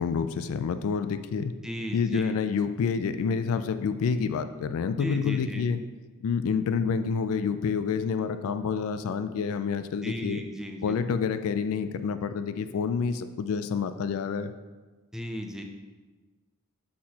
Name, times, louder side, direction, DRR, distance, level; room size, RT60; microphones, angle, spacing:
voice 1, 0.0-1.5 1.9-5.8 6.2-10.4 10.8-14.5, left 6 dB, 70° left, 11 dB, 0.3 m, -28 dB
voice 2, 1.6-2.3 5.0-5.6 10.0-11.0 15.1-15.6, equal, ahead, 3 dB, 0.4 m, -35 dB
6.4 x 5.8 x 2.8 m, 1.3 s
head